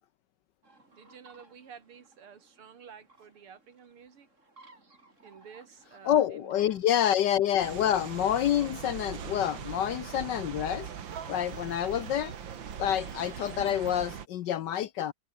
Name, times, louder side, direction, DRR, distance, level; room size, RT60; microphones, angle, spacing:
sound 1, 0.6-10.1, right 2 dB, 35° right, 4.6 m, -60 dB
voice 1, 0.9-4.3 5.2-7.0, right 7 dB, 85° right, 3.0 m, -51 dB
voice 2, 6.0-10.9 11.3-12.3 12.8-15.1, left 10 dB, 65° left, 1.1 m, -27 dB
sound 2, 7.6-14.3, right 8 dB, 60° right, 2.3 m, -40 dB
omnidirectional pair, 2.4 m